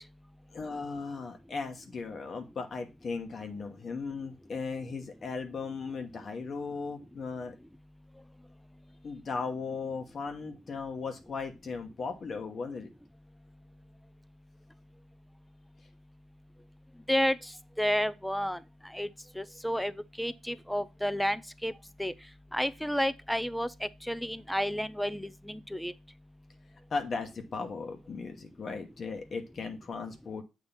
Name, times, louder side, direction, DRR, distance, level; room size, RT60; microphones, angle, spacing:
voice 1, 0.5-7.5 9.0-12.9 26.9-30.4, left 4 dB, 45° left, 1.0 m, -37 dB
voice 2, 17.8-18.6 18.9-19.1 19.4-19.9 20.2-21.7 22.0-22.1 22.5-25.9, equal, 5° left, 0.4 m, -31 dB
7.1 x 2.9 x 5.5 m
cardioid pair, 90°, 0 cm